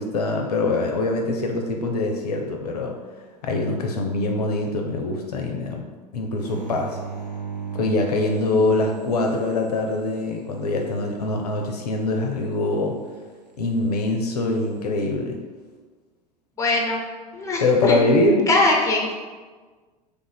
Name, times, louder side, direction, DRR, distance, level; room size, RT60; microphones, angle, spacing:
voice 1, 0.0-3.0 3.4-5.8 6.1-7.0 7.7-13.0 13.6-15.4 17.6-18.5, left 2 dB, 65° left, 2 dB, 0.5 m, -23 dB
sound 1, 6.4-11.0 14.3-14.8, right 7 dB, 85° right, 0.4 m, -37 dB
voice 2, 16.6-17.0 17.3-18.0 18.5-19.1, left 2 dB, 15° left, 0 dB, 0.6 m, -21 dB
3.2 x 2.4 x 3.9 m, 1.4 s
figure-of-eight pair, 80°, 21 cm